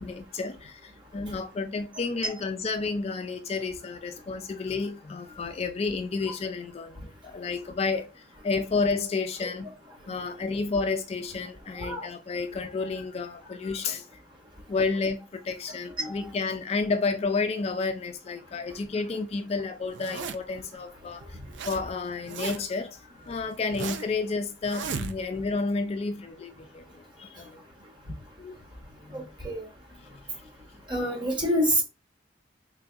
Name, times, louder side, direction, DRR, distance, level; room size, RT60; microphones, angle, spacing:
voice 1, 0.0-9.7 10.1-14.2 14.7-21.4 21.7-27.6 28.4-28.6 29.0-29.2 30.0-30.5, left 4 dB, 35° left, 0.3 m, -31 dB
Zipper (clothing), 19.9-20.6 21.2-21.8 22.1-22.8 23.3-24.2 24.6-25.5, right 5 dB, 70° right, 0.4 m, -35 dB
voice 2, 29.1-29.7 30.9-31.8, equal, 25° right, 1.2 m, -27 dB
3.9 x 3.3 x 2.4 m
head